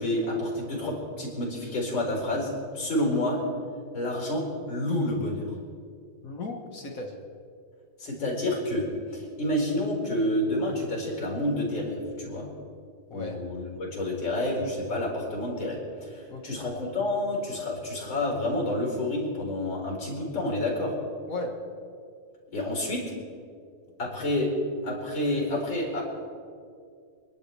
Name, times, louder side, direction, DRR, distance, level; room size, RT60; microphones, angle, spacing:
voice 1, 0.0-2.5 2.7-3.4 3.9-5.5 8.0-12.5 13.1-20.9 22.5-23.0 24.0-24.5 24.8-26.0, left 1 dB, 60° left, -2 dB, 5.0 m, -29 dB
voice 2, 6.2-7.2 13.1-13.4 16.3-16.6 21.3-21.5, left 2 dB, 45° left, 3 dB, 1.7 m, -36 dB
27.0 x 11.5 x 3.5 m, 2.3 s
omnidirectional pair, 2.4 m